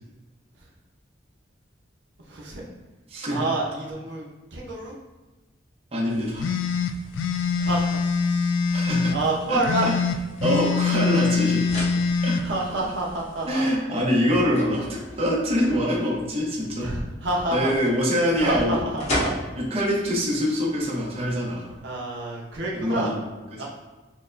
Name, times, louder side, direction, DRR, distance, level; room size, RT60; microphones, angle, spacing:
voice 1, 2.2-2.6 3.3-4.9 7.6-8.0 9.1-9.9 12.4-13.6 16.8-17.7 18.4-19.3 21.8-23.1 23.6-23.7, right 2 dB, 70° right, -3 dB, 0.7 m, -28 dB
voice 2, 3.1-3.5 5.9-6.5 8.7-9.1 9.5-9.6 10.4-11.7 12.2-12.4 13.5-16.9 17.5-18.8 19.6-21.7 22.7-23.2 23.5-23.6, equal, 30° right, -4 dB, 0.8 m, -24 dB
sound 1, 6.4-9.2 9.6-12.4, left 5 dB, 80° left, 0.3 m, -24 dB
sound 2, 11.0-21.8, equal, 40° left, 0.8 m, -38 dB
6.4 x 2.1 x 2.5 m, 1.2 s
head